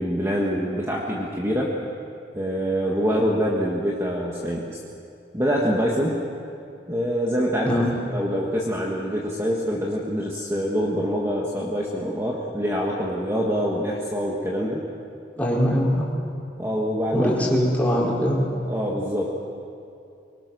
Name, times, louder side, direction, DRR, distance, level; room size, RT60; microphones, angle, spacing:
voice 1, 0.0-1.8 2.3-4.8 5.3-6.2 6.9-14.8 16.6-17.6 18.7-19.4, equal, 15° right, -3 dB, 1.7 m, -25 dB
voice 2, 15.4-16.1 17.1-18.5, equal, 10° left, -5 dB, 4.4 m, -22 dB
24.5 x 23.5 x 6.3 m, 2.5 s
head